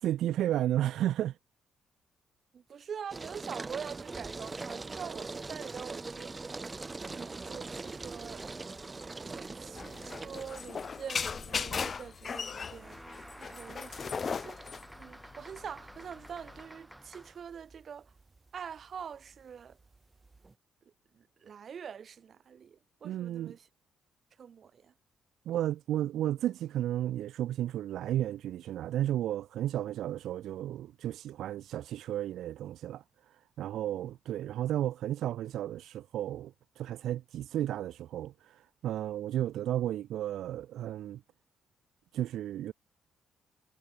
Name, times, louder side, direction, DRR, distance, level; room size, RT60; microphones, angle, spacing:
voice 1, 0.0-1.4 23.0-23.5 25.5-41.2 42.1-42.7, right 12 dB, 75° right, 0.9 m, -33 dB
voice 2, 2.5-8.5 9.2-18.1 18.5-19.8 20.8-23.7 24.4-24.9 33.7-34.1, right 7 dB, 50° right, 2.7 m, -45 dB
sound 1, 3.1-20.5, right 3 dB, 25° right, 4.5 m, -43 dB
sound 2, 9.8-16.6, left 5 dB, 40° left, 0.4 m, -37 dB
sound 3, 12.5-17.5, right 1 dB, 5° right, 5.6 m, -51 dB
cardioid pair, 90°, 0 cm